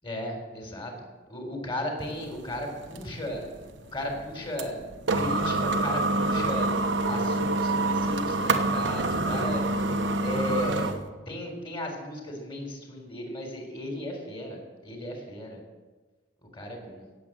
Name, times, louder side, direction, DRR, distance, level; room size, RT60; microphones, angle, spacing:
voice 1, 0.0-0.9 1.3-3.5 3.9-4.8 5.1-9.7 10.2-10.9 11.3-15.6 16.5-17.0, left 1 dB, 30° left, 2 dB, 3.8 m, -35 dB
sound 1, 2.0-11.1, right 2 dB, 80° right, 1.2 m, -27 dB
17.0 x 7.9 x 7.6 m, 1.3 s
head